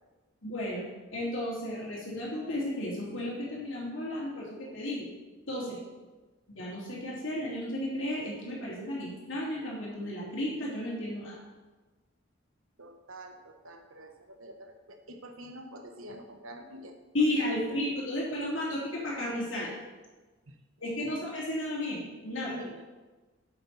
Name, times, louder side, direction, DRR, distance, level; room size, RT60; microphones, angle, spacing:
voice 1, 0.4-0.8 1.1-5.0 5.5-5.8 6.5-11.4 17.1-19.7 20.8-22.6, left 1 dB, 70° left, -4 dB, 2.8 m, -33 dB
voice 2, 12.8-17.0 17.7-17.8 20.5-20.6 21.0-21.1 22.5-22.8, right 1 dB, 85° right, 5 dB, 1.1 m, -47 dB
8.5 x 7.7 x 4.0 m, 1.2 s
head